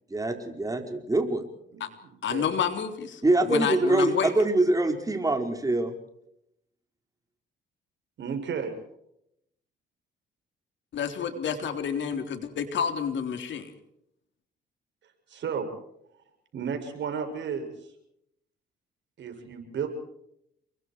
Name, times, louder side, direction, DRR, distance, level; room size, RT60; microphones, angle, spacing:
voice 1, 0.1-1.4 3.2-5.9, right 2 dB, 15° right, 5 dB, 4.8 m, -24 dB
voice 2, 1.7-2.5 8.2-8.7 15.3-15.7 16.5-17.7 19.2-19.9, right 6 dB, 65° right, 5 dB, 6.8 m, -33 dB
voice 3, 2.2-3.2 3.5-4.3 10.9-13.7, left 7 dB, 70° left, 7 dB, 3.6 m, -29 dB
29.0 x 23.5 x 4.7 m, 0.76 s
cardioid pair, 90°, 20 cm